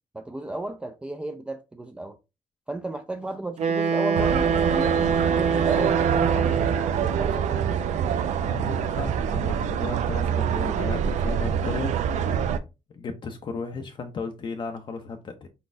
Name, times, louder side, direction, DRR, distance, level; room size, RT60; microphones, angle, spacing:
voice 1, 0.1-2.2 2.7-6.7 7.0-8.2, right 2 dB, 10° right, 0.4 m, -34 dB
Wind instrument woodwind instrument, 3.6-7.1, right 5 dB, 65° right, 0.9 m, -25 dB
sound 1, 4.1-12.6, right 8 dB, 85° right, 0.5 m, -25 dB
voice 2, 8.5-12.0 12.9-15.5, left 4 dB, 40° left, 0.6 m, -35 dB
4.4 x 4.0 x 2.5 m
cardioid pair, 150°, 12 cm